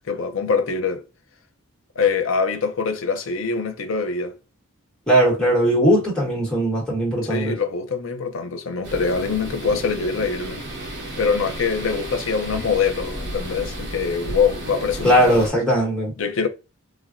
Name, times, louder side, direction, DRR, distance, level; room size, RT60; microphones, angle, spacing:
voice 1, 0.1-1.0 2.0-4.3 7.3-10.6 11.2-15.5 16.2-16.5, left 5 dB, 70° left, 0.6 m, -24 dB
voice 2, 5.1-7.5 15.0-16.1, equal, 5° left, 1.0 m, -19 dB
sound 1, 8.8-15.5, right 1 dB, 55° right, 0.9 m, -33 dB
3.3 x 2.1 x 2.4 m
head